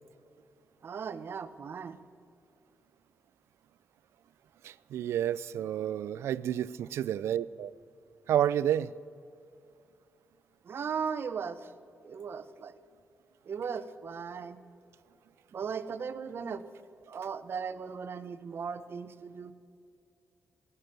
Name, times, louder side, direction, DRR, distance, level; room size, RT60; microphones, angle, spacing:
voice 1, 0.8-2.0 10.6-11.7 12.0-12.8 13.5-14.6 15.5-16.6 17.1-19.5, right 6 dB, 60° right, 0.8 m, -37 dB
voice 2, 4.6-7.7 8.3-8.9, right 10 dB, 85° right, 0.3 m, -30 dB
17.5 x 6.8 x 9.2 m
cardioid pair, 65°, 4 cm